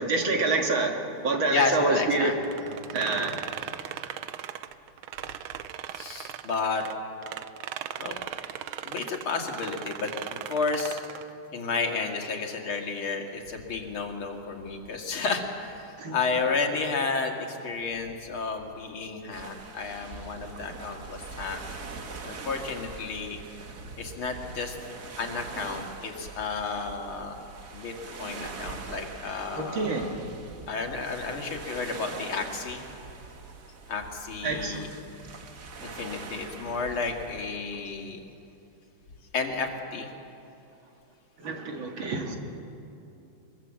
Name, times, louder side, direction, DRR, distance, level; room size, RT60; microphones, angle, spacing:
voice 1, 0.0-2.3 2.9-3.4 16.0-16.2 29.6-30.1 34.4-34.9 41.4-42.4, right 3 dB, 70° right, 3 dB, 2.8 m, -27 dB
voice 2, 1.5-2.3 2.7-2.8 5.9-6.8 8.0-8.2 8.8-11.0 11.5-21.6 22.2-23.4 24.0-24.8 25.2-27.3 27.7-30.1 30.7-32.8 33.9-34.9 35.8-38.2 39.3-40.1, left 4 dB, 75° left, 2 dB, 2.9 m, -32 dB
sound 1, 2.4-6.9 7.2-11.3, right 11 dB, 90° right, 1.6 m, -38 dB
sound 2, 19.3-37.5, right 4 dB, 50° right, 2.0 m, -43 dB
23.0 x 22.5 x 7.6 m, 2.8 s
omnidirectional pair, 2.3 m